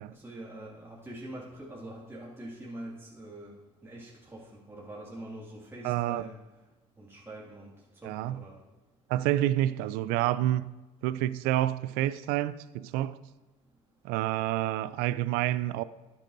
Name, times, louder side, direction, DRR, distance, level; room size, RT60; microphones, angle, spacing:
voice 1, 0.1-3.6 3.8-6.4 7.0-7.7 8.0-8.6, right 1 dB, 15° right, 2.2 m, -44 dB
voice 2, 5.8-6.2 8.0-8.4 9.1-10.7 11.0-13.2 14.0-15.8, right 14 dB, 70° right, 0.4 m, -28 dB
13.0 x 9.0 x 2.7 m
hypercardioid pair, 65°, 16 cm